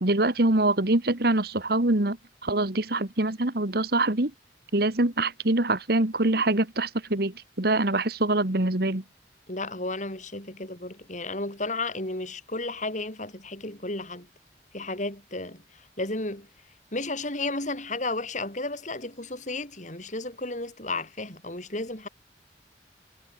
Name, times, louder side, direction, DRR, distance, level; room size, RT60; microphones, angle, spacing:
voice 1, 0.0-2.2 2.4-4.3 4.7-9.0, right 2 dB, 60° right, 1.9 m, -24 dB
voice 2, 9.5-14.3 14.7-16.5 16.9-22.1, left 2 dB, 45° left, 7.8 m, -33 dB
head